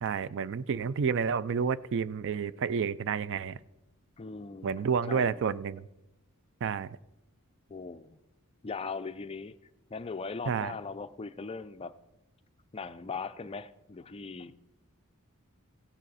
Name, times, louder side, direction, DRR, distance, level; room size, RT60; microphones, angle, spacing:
voice 1, 0.0-3.6 4.6-5.8 6.6-6.9 10.5-10.7, right 6 dB, 55° right, 0.4 m, -30 dB
voice 2, 4.2-5.4 7.7-8.2 8.6-9.6 9.9-12.0 12.7-14.6, left 4 dB, 25° left, 0.4 m, -39 dB
16.0 x 9.0 x 4.1 m
head